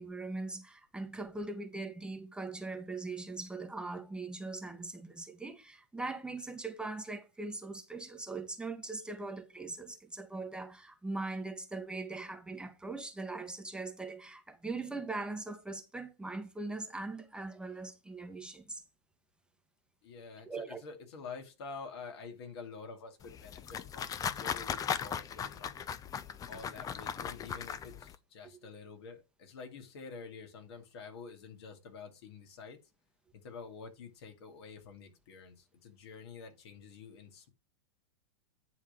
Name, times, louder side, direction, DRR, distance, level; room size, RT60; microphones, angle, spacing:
voice 1, 0.0-18.8 20.5-20.8, right 3 dB, 5° right, 1.0 m, -41 dB
voice 2, 20.0-25.9 26.5-32.8 33.3-37.5, left 4 dB, 65° left, 2.3 m, -48 dB
sound 1, 23.2-28.2, left 8 dB, 25° left, 0.6 m, -38 dB
9.6 x 3.5 x 5.7 m
hypercardioid pair, 105°, 15 cm